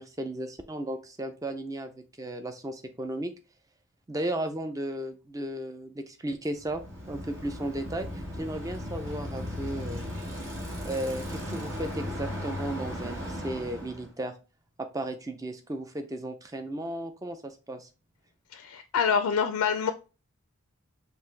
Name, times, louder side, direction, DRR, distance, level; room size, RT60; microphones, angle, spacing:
voice 1, 0.0-3.3 4.1-6.8 7.1-10.2 10.8-14.3 14.8-17.9, right 1 dB, 15° right, 7 dB, 0.4 m, -35 dB
Bicycle, 6.6-14.1, left 1 dB, 55° right, 1.6 m, -36 dB
voice 2, 18.5-19.9, left 6 dB, 85° left, 9 dB, 0.3 m, -26 dB
5.7 x 2.5 x 3.2 m, 0.33 s
head